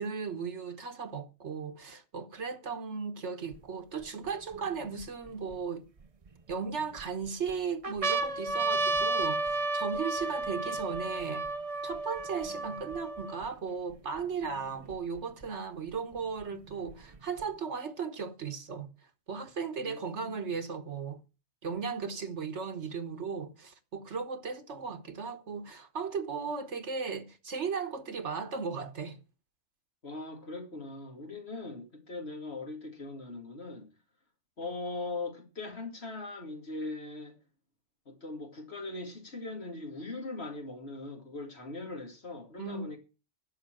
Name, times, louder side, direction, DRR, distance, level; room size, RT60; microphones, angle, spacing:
voice 1, 0.0-5.9 6.5-11.5 11.8-18.9 19.3-21.2 21.6-29.2 42.6-42.9, right 5 dB, 70° right, 1.4 m, -36 dB
sound 1, 3.5-3.6 4.3-5.5 6.3-7.0 7.5-7.6 7.8-13.5 14.2-14.3 14.4-15.4 16.4-17.4, right 3 dB, 35° right, 0.8 m, -32 dB
voice 2, 19.8-20.3 30.0-33.9 34.6-37.4 38.1-43.0, left 2 dB, 60° left, 2.7 m, -40 dB
11.0 x 6.6 x 7.6 m
omnidirectional pair, 1.2 m